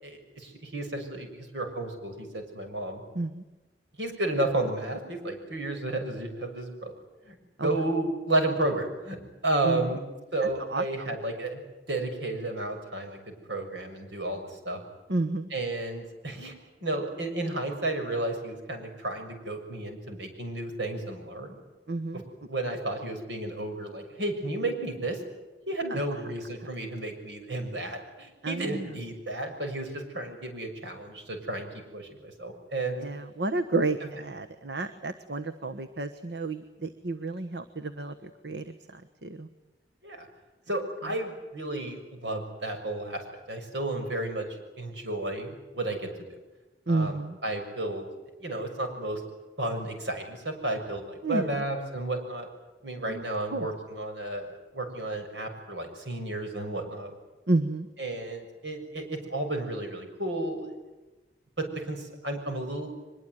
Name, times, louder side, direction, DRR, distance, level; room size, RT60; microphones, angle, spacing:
voice 1, 0.0-3.0 4.0-6.9 7.2-7.4 7.6-9.2 9.4-10.0 10.3-11.6 11.9-14.8 15.5-16.5 16.8-21.6 22.5-25.2 25.7-33.0 34.0-34.1 40.0-40.3 40.7-46.4 46.9-48.1 48.4-49.2 49.6-52.5 52.8-57.1 58.0-60.7 61.6-62.9, right 2 dB, 90° right, 5 dB, 6.4 m, -32 dB
voice 2, 10.7-11.1 15.1-15.5 21.9-22.2 25.9-26.0 28.4-28.9 33.0-39.5 46.9-47.4 51.2-51.6 53.1-53.2 53.5-53.7 57.5-57.9, right 2 dB, 75° right, 8 dB, 1.3 m, -31 dB
24.0 x 22.0 x 9.3 m, 1.1 s
head